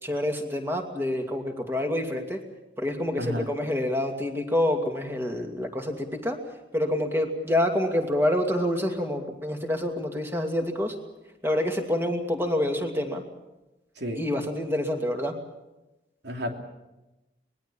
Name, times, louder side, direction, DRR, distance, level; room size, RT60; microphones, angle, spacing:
voice 1, 0.0-2.4 2.8-11.0 11.4-13.2 14.1-15.4, left 1 dB, 15° right, 4 dB, 2.5 m, -27 dB
voice 2, 3.2-3.5 14.0-14.2 16.2-16.5, equal, 70° right, 3 dB, 3.2 m, -31 dB
25.0 x 20.0 x 7.2 m, 1.0 s
head